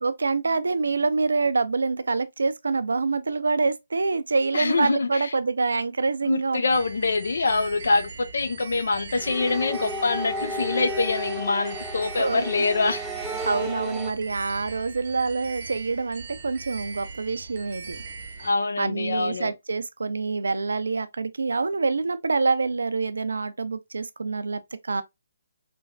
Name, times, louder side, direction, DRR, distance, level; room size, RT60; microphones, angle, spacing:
voice 1, 0.0-6.6 12.2-12.4 13.5-18.0 18.8-25.0, right 4 dB, 80° right, 0.4 m, -26 dB
voice 2, 4.5-5.3 6.3-13.0 18.4-19.5, left 3 dB, 70° left, 0.5 m, -25 dB
sound 1, 6.7-18.5, right 4 dB, 45° right, 0.7 m, -40 dB
sound 2, 9.2-14.1, equal, 5° right, 0.4 m, -33 dB
3.3 x 2.3 x 2.2 m
hypercardioid pair, 155°, 0 cm